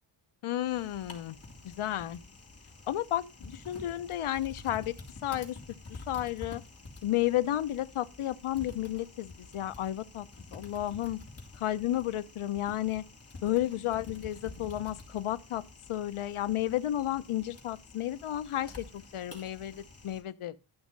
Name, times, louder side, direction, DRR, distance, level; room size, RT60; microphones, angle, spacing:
voice 1, 0.4-1.4 1.6-2.2 2.9-4.9 5.2-5.6 5.9-6.6 7.0-10.3 10.5-11.2 11.6-13.0 13.4-15.6 15.9-20.6, left 13 dB, 80° left, 0.9 m, -32 dB
Typing, 0.6-20.2, left 3 dB, 30° left, 3.2 m, -49 dB
12.0 x 6.1 x 5.3 m
wide cardioid pair, 110°, 49 cm